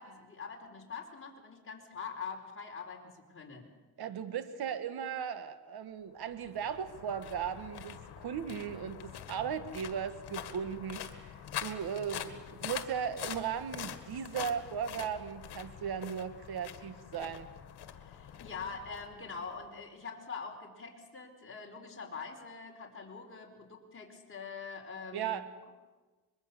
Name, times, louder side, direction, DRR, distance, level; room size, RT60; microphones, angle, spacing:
voice 1, 0.0-3.7 18.0-25.4, left 5 dB, 30° left, 1 dB, 4.6 m, -44 dB
voice 2, 4.0-17.5 25.1-25.4, right 8 dB, 70° right, 10 dB, 1.8 m, -37 dB
sound 1, 6.3-19.7, left 10 dB, 80° left, 1.8 m, -45 dB
24.5 x 22.0 x 7.0 m, 1.3 s
cardioid pair, 100°, 39 cm